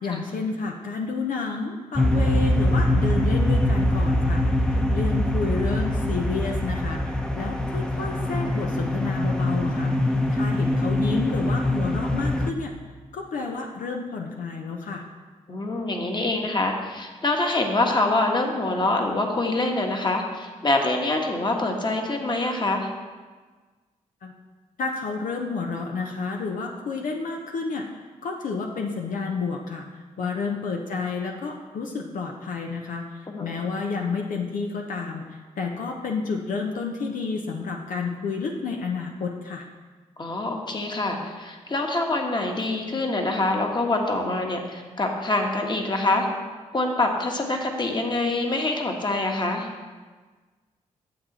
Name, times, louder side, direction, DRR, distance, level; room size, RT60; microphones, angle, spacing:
voice 1, 0.0-4.4 4.7-12.7 13.1-15.0 24.2-24.3 24.8-39.7, left 4 dB, 75° left, 1 dB, 0.8 m, -30 dB
sound 1, 2.0-12.5, left 1 dB, 5° left, 0.8 m, -23 dB
voice 2, 15.5-22.9 30.2-30.3 33.3-33.5 40.2-46.3 46.7-49.7, left 2 dB, 35° left, 2 dB, 1.5 m, -25 dB
9.4 x 7.5 x 4.2 m, 1.4 s
cardioid pair, 60°, 14 cm